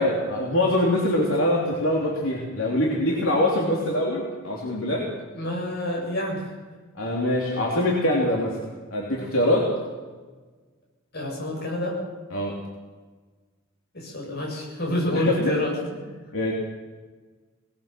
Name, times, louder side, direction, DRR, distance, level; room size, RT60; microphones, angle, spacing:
voice 1, 0.0-5.1 6.9-8.6 8.9-9.8 12.3-12.5 15.1-15.5 16.3-16.5, left 1 dB, 80° left, -3 dB, 3.4 m, -23 dB
voice 2, 5.3-6.4 11.1-12.0 13.9-15.7, left 1 dB, 55° left, -2 dB, 7.9 m, -27 dB
22.0 x 20.0 x 6.1 m, 1.4 s
head